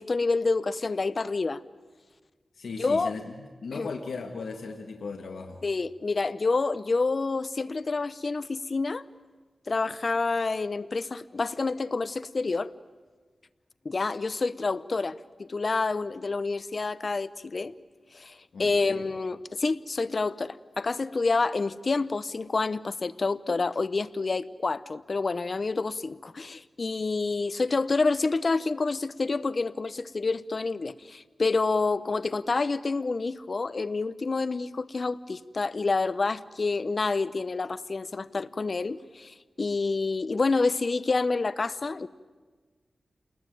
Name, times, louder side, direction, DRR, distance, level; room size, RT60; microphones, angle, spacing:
voice 1, 0.0-1.6 2.8-3.1 3.7-3.9 5.6-9.0 9.7-12.7 13.8-17.7 18.1-42.1, left 3 dB, 50° left, 15 dB, 0.8 m, -28 dB
voice 2, 2.5-3.3 3.6-5.6 18.5-19.1, left 4 dB, 80° left, 2 dB, 1.8 m, -37 dB
28.5 x 21.0 x 9.3 m, 1.4 s
wide cardioid pair, 75°, 0 cm